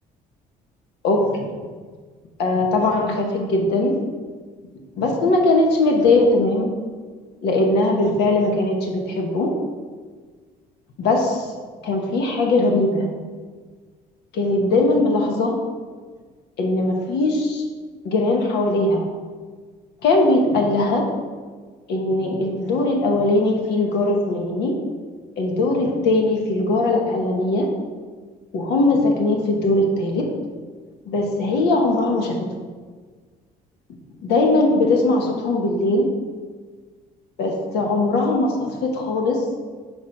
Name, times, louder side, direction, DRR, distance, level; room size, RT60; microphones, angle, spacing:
voice 1, 1.0-1.6 2.4-3.9 5.0-6.7 7.4-9.5 11.0-11.5 11.8-13.1 14.3-15.5 16.6-17.6 18.0-19.0 20.0-21.0 21.9-24.7 25.4-27.7 28.5-30.3 31.1-32.5 34.2-36.1 37.4-39.4, left 2 dB, 80° left, 1 dB, 1.2 m, -20 dB
6.5 x 4.6 x 4.9 m, 1.5 s
cardioid pair, 110°, 17 cm